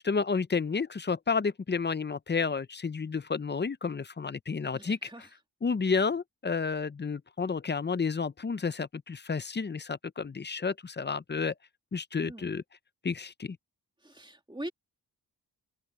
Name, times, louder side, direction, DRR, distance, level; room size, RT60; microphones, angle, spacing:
voice 1, 0.0-5.0 5.6-11.5 11.9-12.6 13.0-13.6, left 5 dB, 25° left, 0.5 m, -31 dB
voice 2, 4.7-5.3 12.2-12.5 14.0-14.7, right 1 dB, 10° right, 2.1 m, -42 dB
open air
wide cardioid pair, 105°, 42 cm